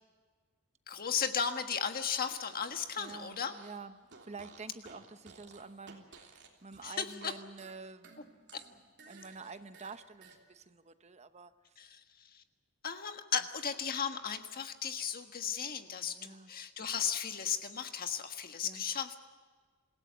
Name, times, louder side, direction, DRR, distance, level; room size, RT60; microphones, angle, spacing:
voice 1, 0.9-3.5 6.8-7.3 8.5-8.6 11.8-12.0 12.3-12.4 12.8-19.2, left 7 dB, 40° left, 7 dB, 1.5 m, -35 dB
Fart, 2.2-3.8 4.1-7.3 7.6-10.4, right 4 dB, 50° right, 3.4 m, -56 dB
voice 2, 3.0-11.7 16.0-16.5 18.6-18.8, right 4 dB, 30° right, 11 dB, 0.9 m, -49 dB
27.0 x 17.0 x 8.3 m, 1.5 s
head